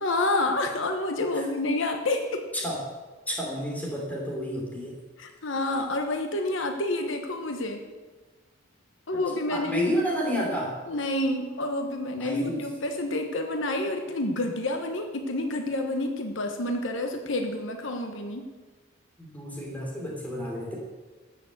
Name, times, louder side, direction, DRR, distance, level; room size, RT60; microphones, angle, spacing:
voice 1, 0.0-2.4 5.2-7.8 9.1-9.9 10.9-18.5, left 2 dB, 65° left, 5 dB, 1.1 m, -28 dB
voice 2, 3.3-5.0 9.1-9.2 9.5-10.8 12.2-12.6 19.2-20.7, equal, 10° left, -2 dB, 3.2 m, -30 dB
13.5 x 7.0 x 7.9 m, 1.3 s
head